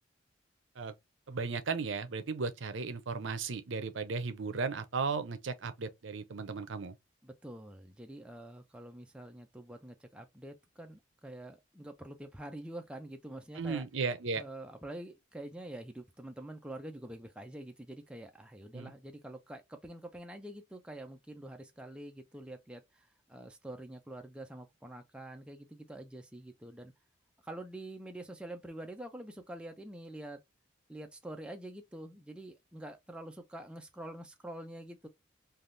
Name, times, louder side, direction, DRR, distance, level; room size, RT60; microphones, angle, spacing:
voice 1, 1.3-6.9 13.5-14.4 18.7-18.9, right 4 dB, 80° right, 0.6 m, -35 dB
voice 2, 7.2-13.9 14.4-26.9 27.4-30.4 30.9-35.1, right 1 dB, 5° right, 0.4 m, -46 dB
3.4 x 2.3 x 2.6 m
head